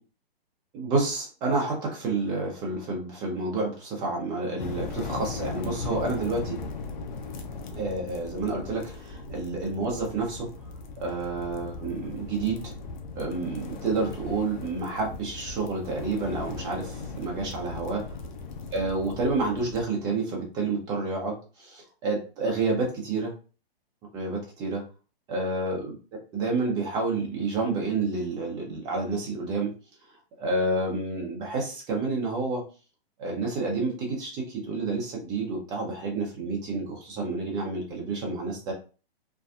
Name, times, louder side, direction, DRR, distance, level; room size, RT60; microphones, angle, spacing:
voice 1, 0.7-6.6 7.7-10.5 11.0-12.7 13.2-18.0 18.7-23.3 24.1-24.8 25.3-25.9 26.3-29.7 30.4-32.6 33.2-38.7, right 3 dB, 15° right, 0 dB, 0.5 m, -29 dB
sound 1, 4.6-19.8, left 4 dB, 50° left, 0.5 m, -38 dB
2.6 x 2.3 x 2.3 m, 0.34 s
hypercardioid pair, 145°, 31 cm